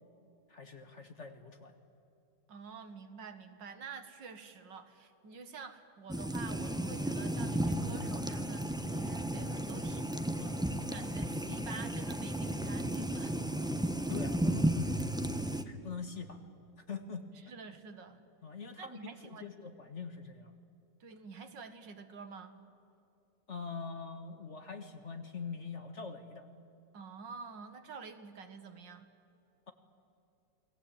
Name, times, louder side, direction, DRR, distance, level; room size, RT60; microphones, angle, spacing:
voice 1, 0.5-1.7 14.1-14.8 15.6-16.4 16.8-17.3 18.4-20.5 23.5-26.5, left 5 dB, 40° left, 7 dB, 1.7 m, -43 dB
voice 2, 2.5-13.4 17.5-18.2 18.8-19.5 21.0-22.6 26.9-29.1, right 5 dB, 65° right, 8 dB, 2.2 m, -48 dB
sound 1, 6.1-15.6, right 1 dB, 5° right, 0.5 m, -34 dB
29.0 x 20.5 x 8.7 m, 2.6 s
omnidirectional pair, 2.1 m